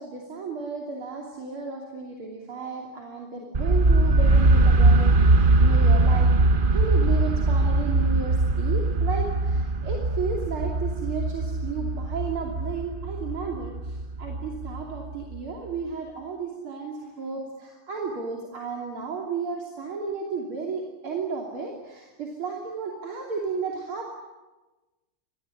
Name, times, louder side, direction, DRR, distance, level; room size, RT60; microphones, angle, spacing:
voice 1, 0.0-6.3 6.7-24.1, right 5 dB, 75° right, 0 dB, 3.8 m, -33 dB
sound 1, 3.5-15.4, right 2 dB, 35° right, 0.8 m, -21 dB
25.5 x 20.0 x 9.8 m, 1.1 s
omnidirectional pair, 2.4 m